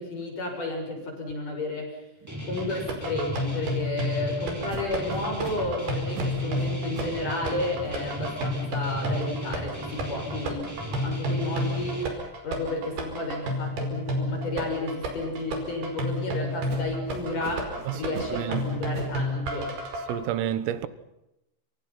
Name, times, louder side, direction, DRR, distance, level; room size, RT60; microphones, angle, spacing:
voice 1, 0.0-2.0 2.5-10.7 11.0-12.1 12.4-19.8, left 2 dB, 40° left, 7.7 m, -32 dB
Guitar, 2.3-12.0, right 1 dB, 5° right, 5.4 m, -36 dB
sound 1, 2.6-20.1, equal, 50° right, 6.7 m, -31 dB
sound 2, 4.7-7.3 7.6-12.4 12.8-16.1 16.7-19.3, right 3 dB, 70° right, 7.2 m, -45 dB
voice 2, 20.1-20.9, right 11 dB, 85° right, 4.0 m, -29 dB
28.5 x 26.5 x 5.8 m
omnidirectional pair, 5.9 m